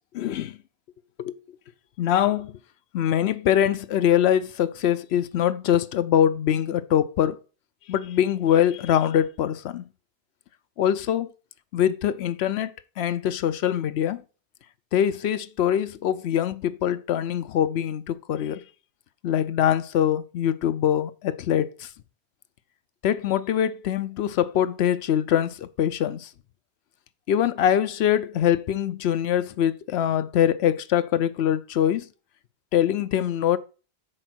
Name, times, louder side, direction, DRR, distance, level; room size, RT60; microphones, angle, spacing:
voice 1, 0.1-0.5 1.2-1.4 2.0-2.5 2.9-7.4 7.9-9.8 10.8-11.3 11.7-12.7 13.0-14.2 14.9-18.6 19.2-21.7 23.0-26.3 27.3-32.0 32.7-33.6, left 10 dB, 90° left, 0.8 m, -23 dB
6.5 x 4.4 x 6.1 m
omnidirectional pair, 1.1 m